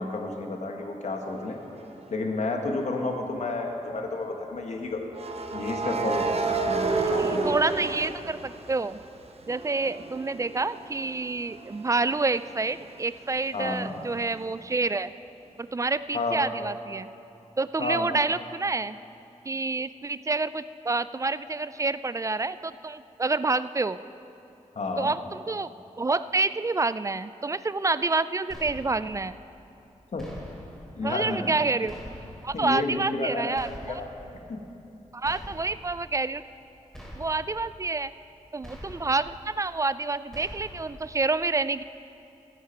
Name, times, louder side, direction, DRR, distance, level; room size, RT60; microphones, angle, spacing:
voice 1, 0.0-1.6 2.1-5.0 5.5-7.6 13.5-14.0 16.1-16.4 17.8-18.1 24.7-25.1 30.1-30.3 31.0-31.5 32.5-33.5 33.9-34.1 34.5-34.6, left 3 dB, 65° left, 2 dB, 1.5 m, -31 dB
sound 1, 1.8-2.1 5.1-9.0 9.4-13.0, right 3 dB, 55° right, 0.9 m, -30 dB
voice 2, 7.0-9.0 9.5-15.1 15.6-17.1 17.6-19.0 19.4-24.0 25.0-25.7 26.0-29.3 31.0-32.0 32.4-34.0 35.1-36.4 37.1-38.1 38.5-41.8, right 3 dB, 25° right, 15 dB, 0.3 m, -28 dB
sound 2, 28.5-29.2 30.2-30.9 31.9-32.6 33.5-34.2 35.2-35.9 36.9-37.6 38.6-39.3 40.3-41.0, equal, 5° left, 2.8 m, -44 dB
15.5 x 9.3 x 4.5 m, 2.8 s
cardioid pair, 65°, 13 cm